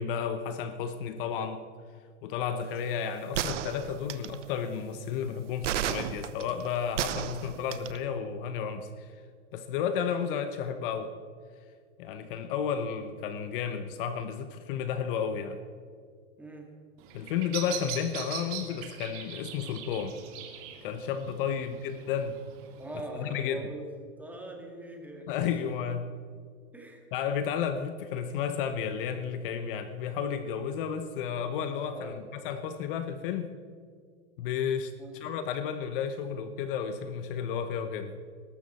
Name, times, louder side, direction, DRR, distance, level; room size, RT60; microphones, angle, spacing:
voice 1, 0.0-1.6 2.2-9.2 9.5-11.1 12.0-15.6 17.1-20.2 20.8-22.4 23.2-23.6 25.3-26.1 27.1-33.5 34.4-38.1, left 7 dB, 45° left, 9 dB, 1.1 m, -32 dB
sound 1, 3.4-4.4 5.6-8.0, right 10 dB, 80° right, 1.1 m, -32 dB
voice 2, 16.4-16.7 21.5-21.7 22.8-25.3 26.7-27.1 31.9-32.2 35.0-35.2, right 1 dB, 5° right, 2 dB, 2.0 m, -42 dB
Bird vocalization bird call bird song, 17.0-23.0, right 9 dB, 35° right, 2.3 m, -42 dB
20.5 x 12.5 x 4.3 m, 2.1 s
supercardioid pair, 145°, 36 cm